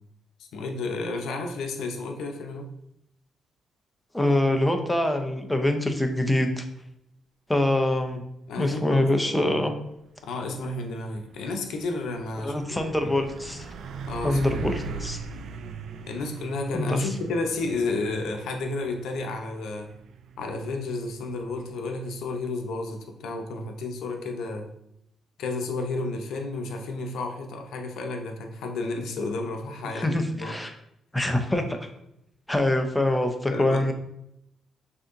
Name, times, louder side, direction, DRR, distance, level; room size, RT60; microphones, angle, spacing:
voice 1, 0.5-2.7 8.5-9.6 10.2-13.1 14.1-15.0 16.1-19.9 20.4-24.7 25.4-30.6 33.5-33.8, left 3 dB, 80° left, 4 dB, 0.6 m, -32 dB
voice 2, 4.1-6.6 7.5-8.2 8.6-9.7 12.4-13.6 14.2-15.2 16.7-17.1 30.0-30.7 31.1-31.9 32.5-33.9, left 1 dB, 10° left, 5 dB, 0.6 m, -24 dB
Truck, 10.0-24.3, right 6 dB, 75° right, 0.3 m, -41 dB
6.2 x 2.8 x 2.6 m, 0.78 s
cardioid pair, 90°, 0 cm